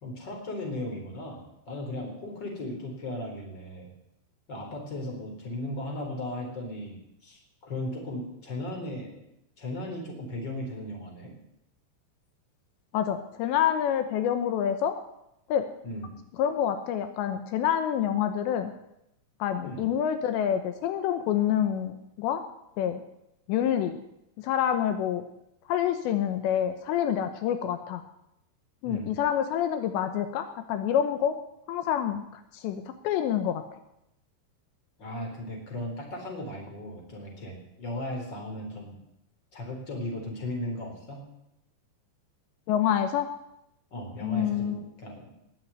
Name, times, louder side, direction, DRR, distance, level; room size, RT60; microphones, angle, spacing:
voice 1, 0.0-3.9 4.5-9.2 9.6-11.3 15.8-16.0 19.6-19.8 28.8-29.1 35.0-38.9 39.5-41.2 43.9-45.3, left 1 dB, 25° left, 1 dB, 4.1 m, -36 dB
voice 2, 12.9-14.9 15.5-15.7 16.4-18.7 19.4-22.4 22.8-23.0 23.5-24.0 24.4-25.2 25.7-28.0 28.8-31.4 31.7-32.2 32.5-33.6 42.7-43.3 44.2-44.8, left 9 dB, 80° left, 8 dB, 3.1 m, -27 dB
19.5 x 7.5 x 9.4 m, 0.82 s
omnidirectional pair, 5.1 m